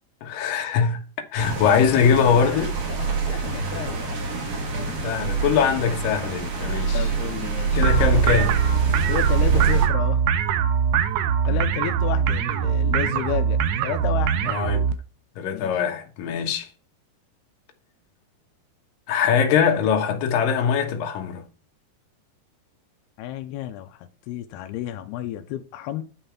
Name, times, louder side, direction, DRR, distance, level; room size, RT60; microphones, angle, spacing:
voice 1, 0.2-1.0 1.3-2.8 4.8-7.1 7.7-8.6 11.4-11.6 14.5-14.8 15.4-16.7 19.1-21.4, left 7 dB, 65° left, 2.8 m, -22 dB
sound 1, 1.4-9.9, right 5 dB, 45° right, 3.1 m, -25 dB
voice 2, 2.4-4.2 4.9-5.1 6.9-8.0 9.1-10.2 11.4-14.3 15.5-15.7 16.3-16.5 23.2-26.0, left 11 dB, 85° left, 2.7 m, -32 dB
sound 2, 7.8-14.9, right 7 dB, 85° right, 2.9 m, -22 dB
10.0 x 5.6 x 5.8 m
omnidirectional pair, 4.6 m